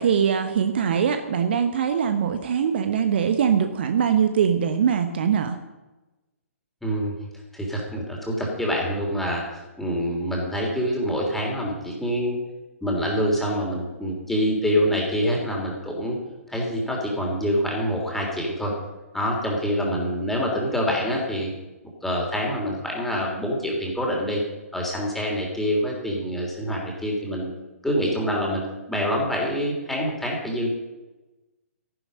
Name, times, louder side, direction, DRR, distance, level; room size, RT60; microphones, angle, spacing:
voice 1, 0.0-5.6, right 7 dB, 45° right, 8 dB, 1.0 m, -22 dB
voice 2, 6.8-7.1 7.5-9.4 9.8-12.4 12.8-16.2 16.5-18.7 19.1-21.5 22.0-24.4 24.7-27.5 27.8-30.7, equal, 5° left, -2 dB, 3.4 m, -26 dB
14.0 x 11.0 x 5.4 m, 1.1 s
figure-of-eight pair, 125°, 8 cm